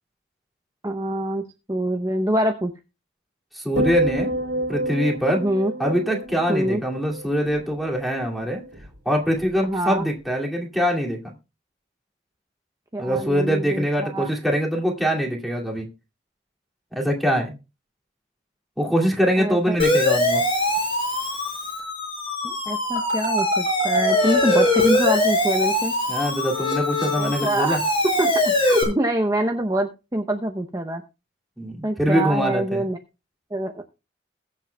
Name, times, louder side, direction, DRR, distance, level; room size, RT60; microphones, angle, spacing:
voice 1, 0.8-1.4 1.7-2.7 5.3-5.7 6.5-6.8 9.6-10.1 12.9-14.3 19.4-19.8 22.4-25.9 27.2-27.8 28.2-31.0 31.8-33.0 33.5-33.8, right 1 dB, 20° right, 4 dB, 0.7 m, -25 dB
voice 2, 3.5-4.3 4.7-5.4 5.8-8.6 9.1-11.3 13.0-15.9 16.9-17.6 18.8-20.4 26.1-27.8 31.6-32.9, equal, ahead, -2 dB, 2.4 m, -23 dB
sound 1, 3.8-8.1 8.4-8.9, right 1 dB, 65° right, 2.4 m, -29 dB
Siren, 19.8-28.8, left 1 dB, 30° left, 4.8 m, -22 dB
21.5 x 7.5 x 2.3 m, 0.28 s
head